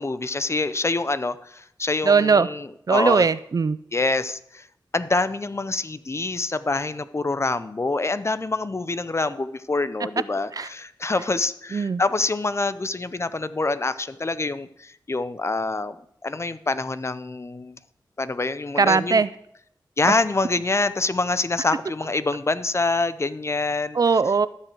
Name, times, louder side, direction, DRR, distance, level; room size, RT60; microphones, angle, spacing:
voice 1, 0.0-3.3 3.9-4.6 4.9-16.0 16.2-17.8 18.2-19.2 20.0-24.0, left 3 dB, 35° left, 13 dB, 0.6 m, -26 dB
voice 2, 2.0-2.5 2.9-3.8 10.5-10.7 11.7-12.0 18.8-19.3 20.1-20.2 23.9-24.5, right 5 dB, 50° right, 16 dB, 0.3 m, -19 dB
12.5 x 4.5 x 7.8 m, 0.70 s
wide cardioid pair, 75°, 8 cm